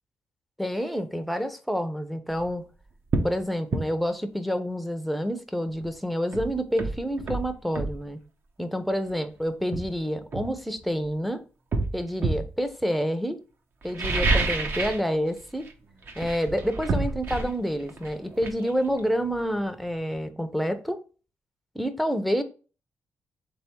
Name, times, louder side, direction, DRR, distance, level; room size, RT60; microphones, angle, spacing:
voice 1, 0.6-2.6 3.2-8.2 8.6-11.4 11.9-13.4 13.8-15.7 16.2-21.0 21.7-22.4, equal, ahead, 0.6 m, -28 dB
sound 1, 2.3-2.5 3.1-3.4 3.7-3.9 5.8-5.9 6.3-8.0 9.1-9.2 9.7-11.1 11.7-12.5 13.8-15.1 15.3-15.7 16.0-19.6 19.9-20.0, right 3 dB, 60° right, 0.8 m, -29 dB
3.5 x 3.4 x 4.3 m
cardioid pair, 85°, 4 cm